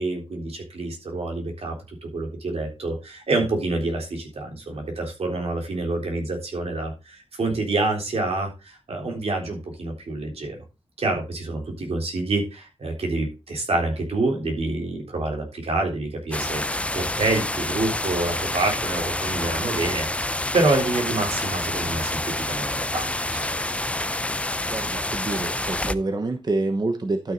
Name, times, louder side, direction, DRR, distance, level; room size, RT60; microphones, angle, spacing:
voice 1, 0.0-10.6 11.0-23.5, right 2 dB, 80° right, 1 dB, 3.8 m, -27 dB
sound 1, 16.3-25.9, left 1 dB, 10° left, 0.5 m, -28 dB
voice 2, 24.6-27.3, right 2 dB, 40° right, 7 dB, 1.0 m, -27 dB
12.0 x 6.3 x 4.0 m, 0.29 s
wide cardioid pair, 95°, 10 cm